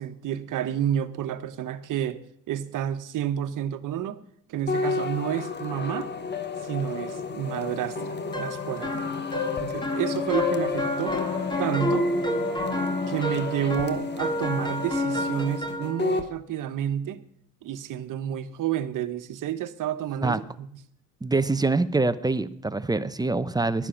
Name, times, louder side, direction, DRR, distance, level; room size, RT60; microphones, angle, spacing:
voice 1, 0.0-4.2 4.5-6.1 6.6-9.1 9.6-11.2 11.6-12.1 13.1-17.2 17.6-20.7, right 10 dB, 65° right, 11 dB, 1.3 m, -30 dB
sound 1, 4.7-16.3, left 4 dB, 30° left, 1.2 m, -32 dB
sound 2, 8.3-16.0, left 1 dB, 15° left, 2.1 m, -29 dB
voice 2, 21.2-23.9, right 3 dB, 10° right, 13 dB, 0.8 m, -25 dB
15.0 x 11.5 x 5.9 m, 0.68 s
cardioid pair, 95°, 34 cm